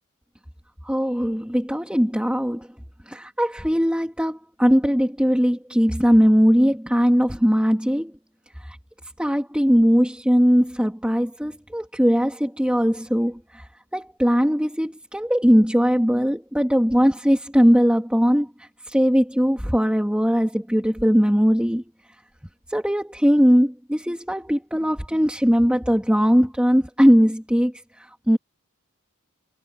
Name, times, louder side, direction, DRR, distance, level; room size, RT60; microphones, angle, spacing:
voice 1, 0.8-2.7 3.1-8.1 8.6-8.8 9.2-21.8 22.7-28.4, equal, 5° right, 2.7 m, -20 dB
head